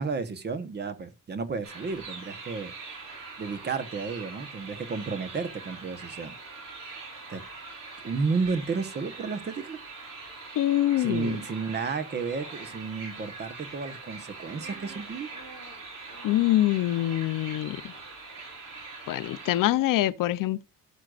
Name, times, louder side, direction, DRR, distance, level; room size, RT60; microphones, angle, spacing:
voice 1, 0.0-2.7 3.4-6.3 7.3-7.4 8.0-9.8 11.0-15.3, right 4 dB, 30° right, 1.1 m, -32 dB
sound 1, 1.6-19.6, right 3 dB, 75° right, 6.3 m, -43 dB
voice 2, 10.5-11.4 16.2-17.9 19.1-20.6, left 14 dB, 80° left, 0.7 m, -25 dB
17.0 x 6.4 x 2.5 m
cardioid pair, 175°, 32 cm